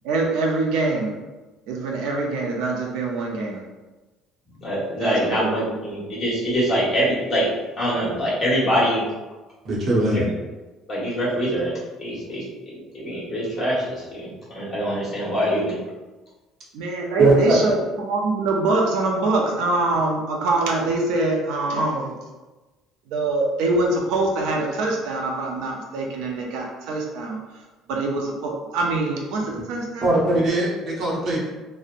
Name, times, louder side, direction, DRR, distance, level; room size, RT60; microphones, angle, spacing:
voice 1, 0.0-1.1 1.7-3.6 5.0-5.7 16.7-22.1 23.1-27.4 27.9-30.1, right 2 dB, 85° right, 0 dB, 0.5 m, -24 dB
voice 2, 4.6-7.5 7.8-9.0 10.1-10.3 10.9-14.3 14.5-15.8, equal, 30° left, -8 dB, 1.2 m, -24 dB
voice 3, 9.6-10.2 17.2-17.6 29.5-29.6 30.0-31.4, right 2 dB, 45° right, -5 dB, 0.8 m, -19 dB
2.7 x 2.0 x 2.4 m, 1.2 s
cardioid pair, 140°, 0 cm